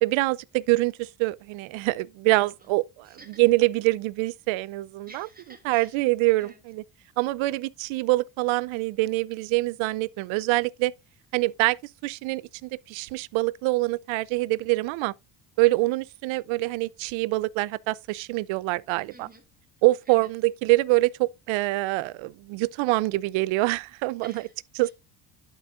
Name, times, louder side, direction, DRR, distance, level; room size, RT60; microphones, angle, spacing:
voice 1, 0.0-3.1 3.4-5.3 5.7-6.8 7.2-10.9 11.3-11.8 12.0-15.1 15.6-19.3 19.8-24.3 24.8-24.9, right 21 dB, 80° right, 0.6 m, -25 dB
voice 2, 2.2-2.7 3.0-3.4 5.0-5.9 6.4-6.6 19.1-19.4 20.0-20.3 24.2-24.9, right 3 dB, 20° right, 3.4 m, -51 dB
11.5 x 5.7 x 2.5 m
cardioid pair, 115°, 47 cm